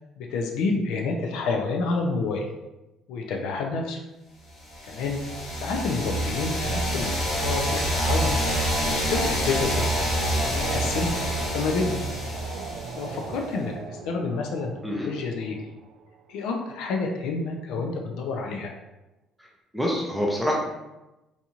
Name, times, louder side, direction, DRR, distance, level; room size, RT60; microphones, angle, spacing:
voice 1, 0.2-2.5 3.1-4.0 4.9-5.2 5.6-8.4 8.8-10.0 10.5-12.0 13.0-15.6 16.3-18.7, left 3 dB, 75° left, 2 dB, 0.5 m, -29 dB
sound 1, 4.7-13.4, equal, 60° left, 1.5 m, -27 dB
sound 2, 5.7-16.5, right 5 dB, 70° right, 0.3 m, -41 dB
voice 2, 19.7-20.5, left 1 dB, ahead, -2 dB, 0.5 m, -26 dB
4.0 x 2.4 x 2.9 m, 1.0 s
cardioid pair, 150°, 0 cm